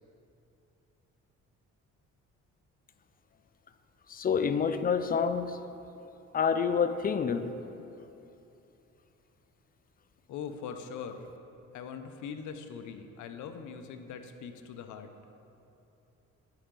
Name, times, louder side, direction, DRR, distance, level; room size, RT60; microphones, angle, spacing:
voice 1, 4.1-5.7 6.3-7.5, left 6 dB, 30° left, 10 dB, 0.3 m, -28 dB
voice 2, 10.3-11.3 11.7-15.1, left 6 dB, 80° left, 8 dB, 0.6 m, -41 dB
9.9 x 4.9 x 3.7 m, 2.8 s
cardioid pair, 90°, 30 cm